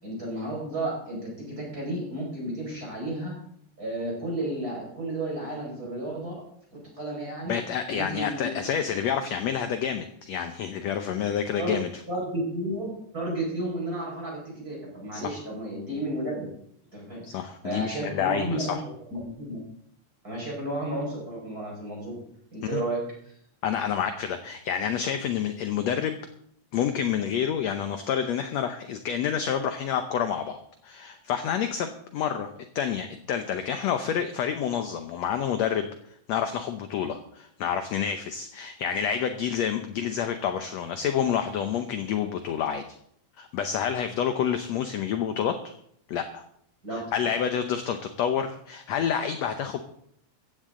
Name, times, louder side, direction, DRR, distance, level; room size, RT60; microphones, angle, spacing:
voice 1, 0.0-3.4 3.8-6.3 7.0-7.6 7.9-8.6 11.1-11.2 11.6-11.8 12.1-16.5 16.9-17.2 17.6-18.8 19.1-19.6 20.2-22.1 22.5-23.3 46.8-47.0, right 1 dB, 25° right, -3 dB, 5.7 m, -32 dB
voice 2, 7.5-11.9 15.1-15.2 17.2-18.8 22.7-22.8 23.6-26.2 26.7-35.9 36.3-42.8 43.4-45.7 46.1-46.4 46.9-49.8, left 8 dB, 75° left, 7 dB, 1.6 m, -28 dB
16.0 x 15.0 x 3.8 m, 0.68 s
omnidirectional pair, 4.1 m